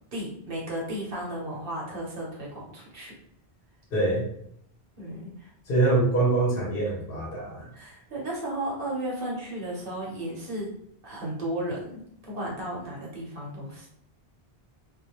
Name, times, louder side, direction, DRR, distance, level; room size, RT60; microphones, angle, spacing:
voice 1, 0.1-3.1 5.0-5.5 6.9-7.0 7.7-10.7 11.0-13.9, right 1 dB, 60° right, -4 dB, 1.0 m, -34 dB
voice 2, 3.9-4.2 5.7-7.7, right 2 dB, 60° left, -4 dB, 1.1 m, -24 dB
2.5 x 2.1 x 2.9 m, 0.70 s
omnidirectional pair, 1.1 m